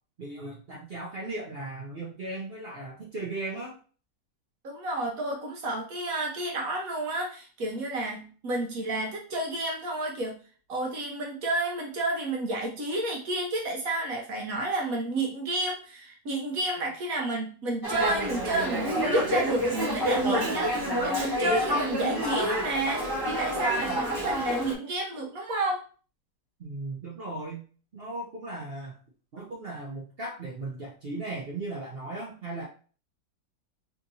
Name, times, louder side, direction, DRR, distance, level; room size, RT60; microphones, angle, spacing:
voice 1, 0.2-3.8 26.6-27.6 27.9-29.0 29.3-32.6, right 2 dB, 80° right, -3 dB, 0.5 m, -37 dB
voice 2, 4.6-10.4 10.7-25.8, right 2 dB, 60° right, 0 dB, 1.0 m, -30 dB
Dog, 17.8-24.7, equal, 25° right, 0.5 m, -28 dB
3.5 x 2.9 x 2.7 m, 0.39 s
omnidirectional pair, 2.1 m